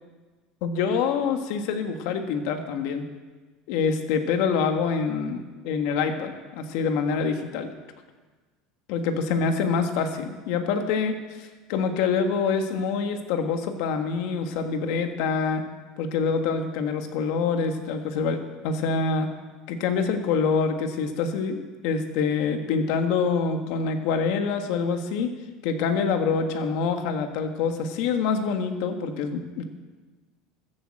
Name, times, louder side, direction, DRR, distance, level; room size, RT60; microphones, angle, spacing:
voice 1, 0.6-3.0 3.7-7.7 8.9-15.6 16.0-19.3 19.7-25.3 25.6-29.8, left 5 dB, 70° left, 6 dB, 1.5 m, -26 dB
14.0 x 7.6 x 7.7 m, 1.3 s
supercardioid pair, 125°, 0 cm